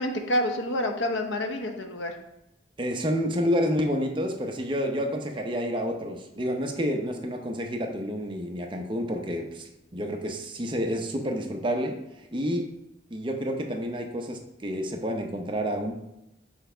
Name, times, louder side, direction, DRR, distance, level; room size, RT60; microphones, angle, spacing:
voice 1, 0.0-2.2, left 1 dB, 85° left, 5 dB, 0.9 m, -28 dB
voice 2, 2.8-12.0 12.3-12.7 13.1-15.9, equal, 25° right, 3 dB, 0.7 m, -29 dB
6.4 x 3.3 x 4.9 m, 0.87 s
head